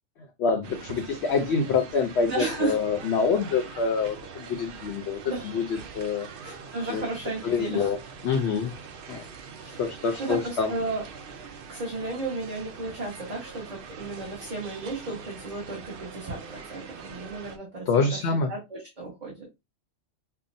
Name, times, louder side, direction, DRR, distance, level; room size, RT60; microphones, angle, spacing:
voice 1, 0.4-6.3 6.9-7.1 7.4-8.0 8.2-8.7 9.1-9.3 9.8-10.7 17.9-18.5, left 5 dB, 65° left, 4 dB, 0.8 m, -26 dB
sound 1, 0.6-17.6, right 5 dB, 60° right, 0.7 m, -43 dB
voice 2, 2.3-2.8 5.2-5.4 6.4-7.9 9.6-9.8 10.2-11.0 11.7-18.0 18.5-19.6, right 3 dB, 35° right, -4 dB, 1.3 m, -34 dB
5.5 x 2.1 x 2.6 m, 0.22 s
omnidirectional pair, 1.3 m